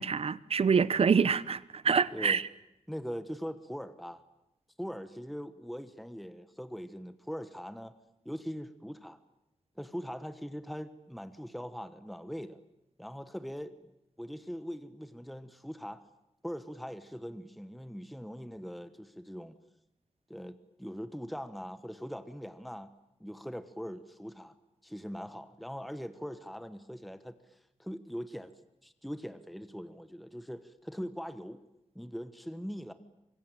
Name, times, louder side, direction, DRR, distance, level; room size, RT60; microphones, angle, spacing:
voice 1, 0.0-2.4, right 6 dB, 55° right, 0.9 m, -26 dB
voice 2, 2.9-4.2 4.8-7.9 8.2-9.2 9.8-12.6 13.0-13.8 14.2-16.0 16.4-19.6 20.3-22.9 23.2-24.5 24.8-28.5 28.8-31.6 31.9-32.9, equal, ahead, 1.2 m, -41 dB
25.0 x 22.5 x 9.1 m
wide cardioid pair, 125°, 12 cm